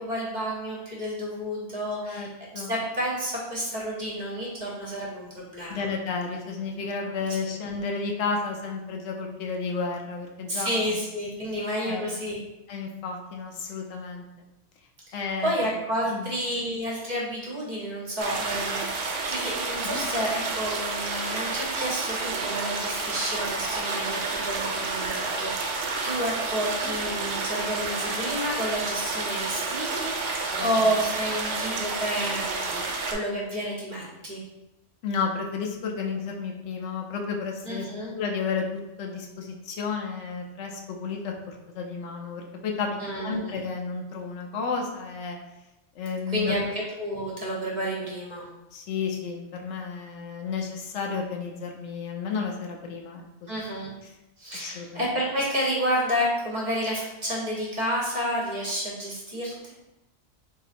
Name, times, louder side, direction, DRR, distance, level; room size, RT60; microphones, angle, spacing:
voice 1, 0.0-2.3 2.7-5.8 7.0-7.1 10.5-12.4 15.1-15.2 15.4-34.4 37.6-38.1 43.0-43.6 46.3-48.5 53.5-53.9 54.4-59.7, equal, 45° right, -4 dB, 0.8 m, -30 dB
voice 2, 5.7-11.0 11.8-12.1 12.7-14.2 15.1-15.7 16.1-16.3 19.8-20.0 26.8-26.9 30.5-30.8 35.0-37.9 38.2-42.9 43.2-45.4 46.0-46.5 48.7-53.5 54.0-54.1 54.5-55.0, left 5 dB, 75° left, 1 dB, 0.9 m, -32 dB
sound 1, 18.2-33.1, right 3 dB, 70° right, 0.8 m, -30 dB
3.9 x 2.8 x 2.5 m, 0.95 s
omnidirectional pair, 1.2 m